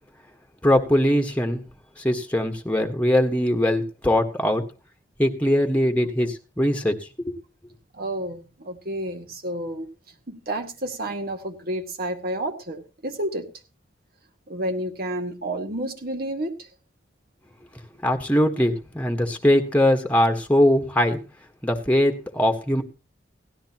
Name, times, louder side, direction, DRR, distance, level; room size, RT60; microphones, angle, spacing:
voice 1, 0.6-1.6 2.0-4.6 5.2-7.3 18.0-21.2 21.6-22.8, left 1 dB, 10° left, 5 dB, 1.4 m, -21 dB
voice 2, 7.9-9.9 10.3-13.5 14.5-16.7, right 1 dB, 60° right, 4 dB, 2.1 m, -30 dB
17.5 x 13.0 x 3.0 m, 0.32 s
head